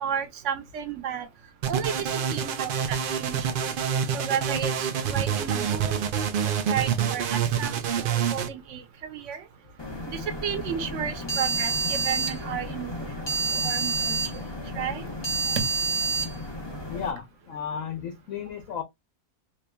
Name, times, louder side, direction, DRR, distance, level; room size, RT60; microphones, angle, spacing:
voice 1, 0.0-1.3 1.7-3.6 4.1-6.0 6.7-9.4 10.1-14.2 14.7-15.0 15.6-15.7, right 8 dB, 60° right, 1.0 m, -33 dB
sound 1, 1.6-8.5, right 8 dB, 80° right, 0.4 m, -27 dB
sound 2, 9.8-17.1, right 3 dB, 25° left, 0.7 m, -29 dB
voice 2, 16.9-18.8, left 7 dB, 65° left, 1.1 m, -34 dB
3.9 x 3.1 x 2.2 m
omnidirectional pair, 1.5 m